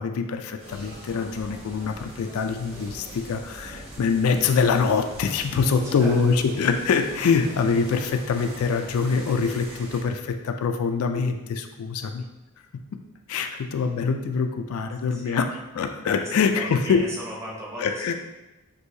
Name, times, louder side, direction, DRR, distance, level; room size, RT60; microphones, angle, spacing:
voice 1, 0.0-12.2 12.7-13.0 13.3-17.0 17.8-18.1, left 5 dB, 85° left, 6 dB, 0.3 m, -24 dB
sound 1, 0.6-10.0, right 1 dB, 70° right, 1.4 m, -42 dB
voice 2, 5.8-6.4 15.0-15.4 16.2-18.1, equal, 10° right, -4 dB, 0.8 m, -37 dB
6.1 x 2.7 x 2.7 m, 1.0 s
head